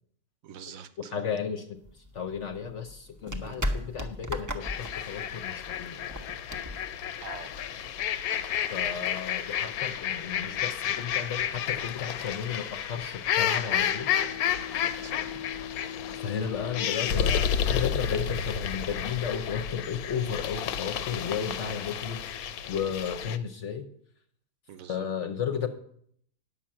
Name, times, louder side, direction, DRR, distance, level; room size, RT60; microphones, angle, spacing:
voice 1, 0.4-1.2 3.4-3.6 7.2-7.6 15.0-15.4 24.7-25.1, right 7 dB, 70° right, 11 dB, 1.2 m, -45 dB
voice 2, 1.0-1.8 2.1-6.1 8.7-14.1 16.2-23.9 24.9-25.7, left 7 dB, 60° left, 6 dB, 1.0 m, -34 dB
sound 1, 1.8-7.8, equal, 20° right, 0.6 m, -37 dB
sound 2, 4.6-23.4, left 9 dB, 85° left, 1.1 m, -31 dB
Bowed string instrument, 13.7-18.7, left 8 dB, 30° left, 0.6 m, -42 dB
10.0 x 5.7 x 7.5 m, 0.66 s
omnidirectional pair, 1.5 m